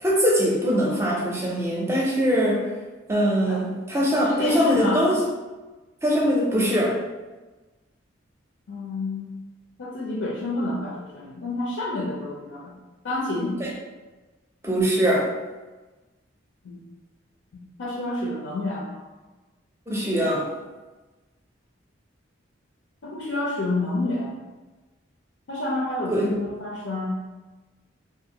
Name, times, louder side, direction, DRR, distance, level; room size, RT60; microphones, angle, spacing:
voice 1, 0.0-2.7 3.1-5.2 6.0-7.0 13.6-13.7 14.6-15.3 19.9-20.5 26.1-26.3, equal, 15° right, -4 dB, 0.5 m, -22 dB
voice 2, 4.2-5.0 8.7-9.3 9.8-12.7 13.0-13.6 16.6-16.8 17.5-19.0 23.0-24.4 25.5-27.2, left 2 dB, 85° left, -3 dB, 0.5 m, -29 dB
2.6 x 2.4 x 2.8 m, 1.2 s
head